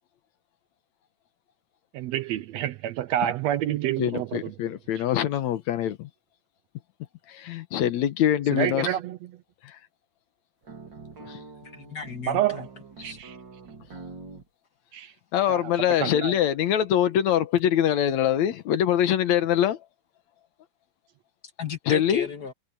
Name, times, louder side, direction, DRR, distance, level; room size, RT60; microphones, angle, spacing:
voice 1, 1.9-4.5 5.0-5.1 8.5-9.2 12.3-12.7 13.0-13.4 14.9-15.1 15.5-15.7 16.0-16.3, right 12 dB, 75° right, 1.7 m, -28 dB
voice 2, 4.0-6.1 7.3-9.0 9.6-9.8 11.2-11.4 15.3-19.8 21.9-22.2, left 10 dB, 75° left, 2.3 m, -24 dB
sound 1, 10.6-14.5, right 4 dB, 35° right, 3.7 m, -44 dB
voice 3, 11.6-12.7 13.0-13.2 21.6-22.5, left 5 dB, 40° left, 1.8 m, -34 dB
omnidirectional pair, 3.4 m